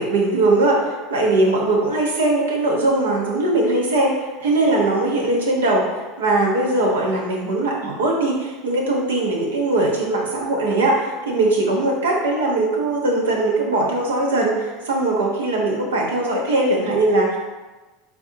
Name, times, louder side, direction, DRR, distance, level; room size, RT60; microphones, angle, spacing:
voice 1, 0.0-17.4, right 2 dB, 80° right, -1 dB, 0.9 m, -20 dB
4.6 x 3.9 x 2.7 m, 1.2 s
hypercardioid pair, 80°, 0 cm